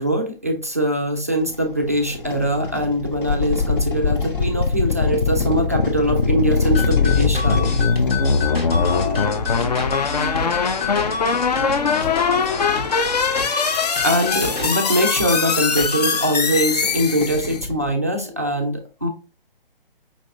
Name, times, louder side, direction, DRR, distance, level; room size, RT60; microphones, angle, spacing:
voice 1, 0.0-7.8 13.7-19.1, equal, 15° right, 0.3 m, -22 dB
sound 1, 0.7-0.8 1.3-14.6 15.3-15.4 15.7-15.8 16.3-17.9, left 3 dB, 60° left, 0.9 m, -30 dB
sound 2, 3.3-17.7, left 5 dB, 45° left, 0.5 m, -22 dB
sound 3, 6.7-16.3, left 5 dB, 85° left, 1.3 m, -29 dB
voice 2, 8.6-12.7, left 3 dB, 10° left, 0.8 m, -35 dB
5.2 x 3.3 x 2.5 m
figure-of-eight pair, 135°, 29 cm